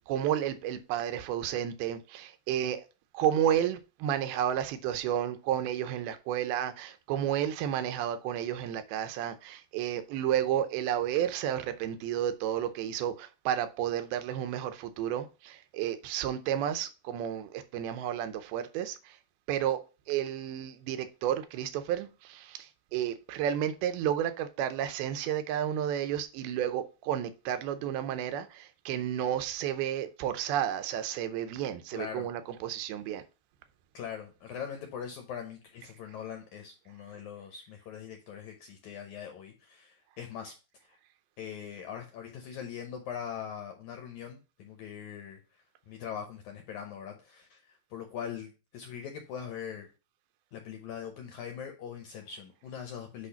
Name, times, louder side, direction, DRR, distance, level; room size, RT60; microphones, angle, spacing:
voice 1, 0.1-2.8 3.1-19.2 19.5-19.8 20.1-33.2, right 10 dB, 90° right, 2.6 m, -31 dB
voice 2, 31.9-32.3 33.9-40.6 40.9-41.0 41.4-45.4 45.9-49.9 50.5-53.3, left 8 dB, 75° left, 1.8 m, -41 dB
8.3 x 2.8 x 5.6 m
omnidirectional pair, 4.3 m